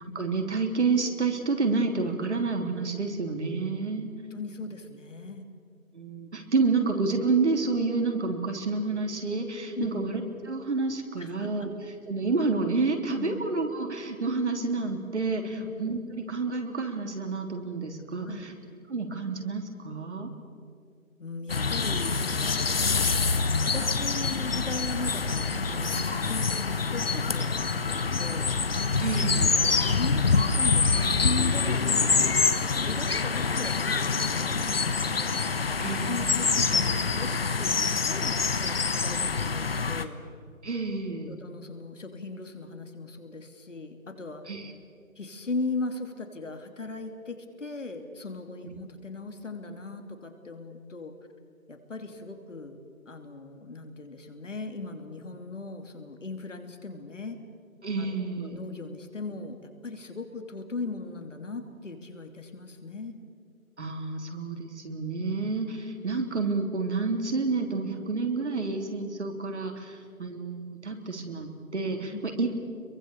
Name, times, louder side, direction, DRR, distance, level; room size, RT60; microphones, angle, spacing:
voice 1, 0.1-4.1 5.9-10.2 10.5-11.7 12.1-18.5 18.9-20.3 29.0-29.6 35.8-36.5 40.6-41.3 44.5-44.7 48.7-48.8 57.8-58.6 63.8-72.5, right 3 dB, 55° right, 4 dB, 3.4 m, -29 dB
voice 2, 4.3-5.4 9.7-10.1 11.2-11.7 13.2-13.5 15.5-15.7 18.2-18.5 21.2-23.0 23.6-28.9 29.5-32.5 32.8-40.2 41.3-44.4 45.2-51.1 51.7-52.8 53.1-57.4 58.0-63.2 72.1-72.3, left 3 dB, 60° left, 6 dB, 3.0 m, -38 dB
sound 1, 21.5-40.1, left 4 dB, 45° left, 1.2 m, -26 dB
27.5 x 23.0 x 6.9 m, 2.3 s
figure-of-eight pair, 160°, 42 cm